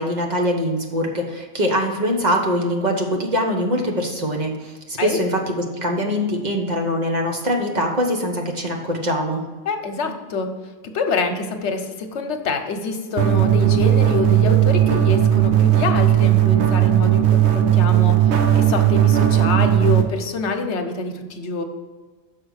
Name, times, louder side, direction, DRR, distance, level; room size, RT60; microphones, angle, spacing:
voice 1, 0.0-9.4, equal, 40° right, 1 dB, 1.1 m, -23 dB
voice 2, 9.6-10.5 10.8-21.6, left 3 dB, 80° left, 6 dB, 1.1 m, -26 dB
sound 1, 13.2-20.0, right 11 dB, 75° right, 1.0 m, -16 dB
6.3 x 5.1 x 6.3 m, 1.3 s
omnidirectional pair, 1.1 m